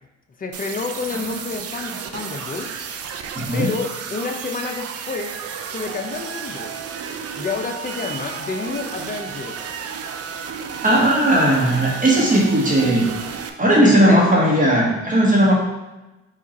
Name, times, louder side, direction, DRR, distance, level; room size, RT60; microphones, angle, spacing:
voice 1, 0.4-2.8 3.5-5.4 5.7-6.7 7.4-9.6 13.8-14.2, left 4 dB, 30° left, 4 dB, 0.6 m, -29 dB
sound 1, 0.5-13.5, right 6 dB, 55° right, 0.5 m, -32 dB
voice 2, 3.3-3.7 10.8-13.1 13.6-15.5, right 1 dB, 25° right, -3 dB, 1.2 m, -16 dB
4.9 x 2.5 x 4.1 m, 1.1 s
cardioid pair, 90°, 30 cm